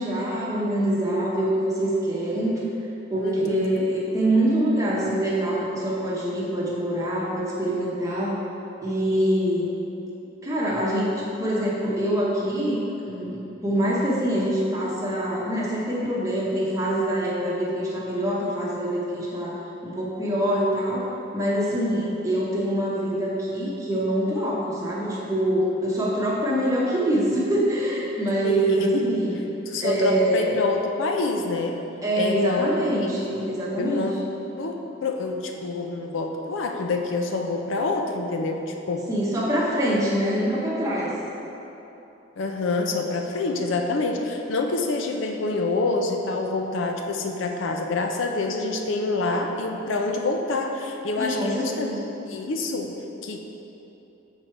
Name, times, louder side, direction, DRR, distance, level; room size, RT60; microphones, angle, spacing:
voice 1, 0.0-2.6 3.1-8.4 8.8-9.7 10.4-19.5 19.8-21.1 21.3-29.4 29.8-30.6 32.0-34.1 39.1-41.1 51.2-52.0, right 1 dB, 15° right, -6 dB, 0.9 m, -25 dB
voice 2, 3.2-3.9 21.7-22.0 28.4-29.1 29.7-31.8 32.1-33.1 33.8-34.2 34.6-39.1 42.4-51.9 52.3-53.4, left 3 dB, 75° left, 3 dB, 0.5 m, -27 dB
6.2 x 4.1 x 4.4 m, 3.0 s
head